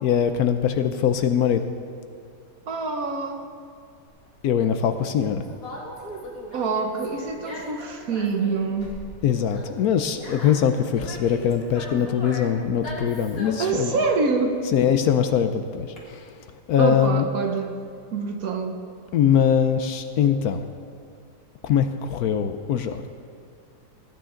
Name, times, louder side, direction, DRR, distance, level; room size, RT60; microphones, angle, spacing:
voice 1, 0.0-1.6 4.4-5.4 9.2-14.0 14.7-16.4 16.7-17.3 19.1-20.7 21.6-23.1, left 8 dB, 70° left, 9 dB, 1.0 m, -22 dB
voice 2, 2.7-3.5 6.5-8.9 13.6-14.6 16.8-17.7 18.1-18.8, right 4 dB, 60° right, 5 dB, 1.4 m, -26 dB
Conversation, 4.1-16.0, left 1 dB, 55° left, 2.5 m, -39 dB
18.5 x 9.5 x 3.8 m, 2.3 s
omnidirectional pair, 1.8 m